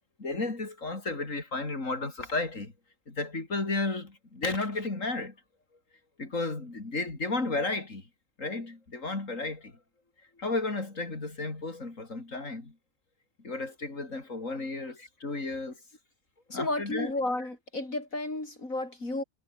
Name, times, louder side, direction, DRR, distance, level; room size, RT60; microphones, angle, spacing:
voice 1, 0.2-2.7 3.1-5.3 6.2-8.0 8.4-9.7 10.4-12.7 13.4-15.8 16.5-17.1, left 3 dB, 70° left, 4.3 m, -33 dB
voice 2, 16.5-19.2, left 2 dB, 85° left, 6.9 m, -32 dB
omnidirectional pair, 1.4 m